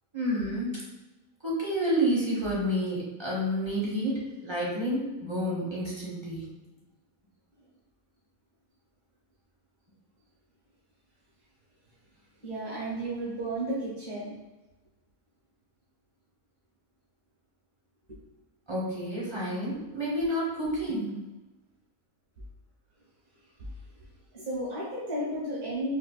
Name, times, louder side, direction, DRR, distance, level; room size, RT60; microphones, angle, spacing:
voice 1, 0.1-0.7 1.4-6.5 18.7-21.1, equal, 30° right, -6 dB, 0.5 m, -29 dB
voice 2, 12.4-14.3 24.3-25.9, right 1 dB, 80° right, -8 dB, 1.7 m, -33 dB
5.0 x 2.2 x 2.3 m, 1.1 s
omnidirectional pair, 1.6 m